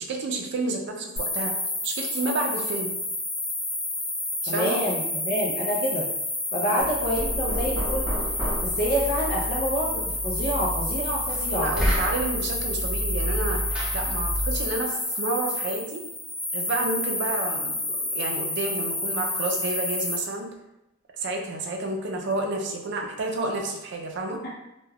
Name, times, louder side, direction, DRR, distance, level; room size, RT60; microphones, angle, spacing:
voice 1, 0.0-1.6 1.8-2.9 4.4-4.8 6.7-6.8 11.5-13.6 13.9-16.0 16.5-20.5 21.2-24.4, right 2 dB, 60° right, 2 dB, 0.4 m, -30 dB
sound 1, 1.2-20.2, left 2 dB, 30° left, 0.9 m, -30 dB
voice 2, 4.5-6.1 6.5-8.1 8.6-11.7, equal, 50° left, -3 dB, 0.4 m, -27 dB
Knock, 6.8-14.7, equal, 5° right, 0.7 m, -30 dB
2.3 x 2.2 x 3.3 m, 0.91 s
head